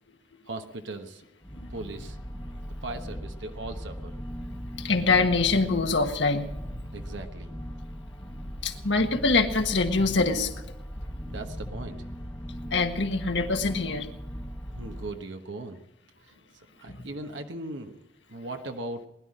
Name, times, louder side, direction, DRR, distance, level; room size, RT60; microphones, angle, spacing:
voice 1, 0.5-1.2 1.7-2.2 2.8-4.2 6.9-7.5 11.2-12.1 14.7-15.8 16.2-18.0 18.3-19.1, right 2 dB, 85° right, 5 dB, 1.2 m, -38 dB
sound 1, 1.4-15.1, equal, 10° left, 1.0 m, -38 dB
voice 2, 4.8-6.5 8.6-10.5 12.7-14.1 16.9-17.1, left 3 dB, 80° left, 5 dB, 1.6 m, -24 dB
20.0 x 11.5 x 5.0 m, 0.96 s
head